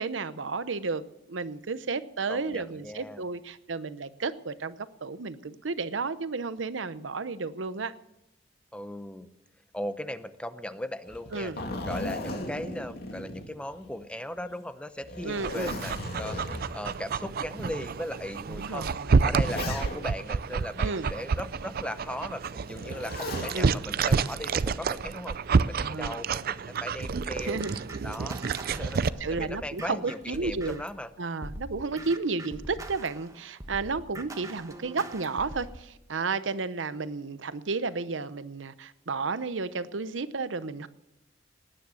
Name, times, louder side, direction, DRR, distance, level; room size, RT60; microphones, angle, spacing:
voice 1, 0.0-7.9 11.3-11.6 15.2-15.8 18.5-19.2 20.8-21.1 23.5-23.8 25.8-26.1 27.4-27.8 29.2-30.8 31.2-40.9, right 4 dB, 80° right, 14 dB, 0.8 m, -32 dB
voice 2, 2.3-3.2 8.7-9.3 9.7-11.5 11.8-25.4 25.7-27.6 28.0-28.4 28.7-29.0 29.3-31.1, left 1 dB, 5° left, 12 dB, 0.8 m, -38 dB
Zipper (clothing), 11.1-14.0 14.4-14.5 15.0-16.9 17.6-17.7 18.7-20.2 22.7-23.6 25.0-25.4, left 2 dB, 55° left, 2.5 m, -37 dB
Dog, 15.3-29.1, right 5 dB, 55° right, 0.5 m, -29 dB
sound 1, 27.1-31.0 31.4-35.8, right 1 dB, 20° right, 1.2 m, -43 dB
18.5 x 10.0 x 6.3 m, 0.90 s
head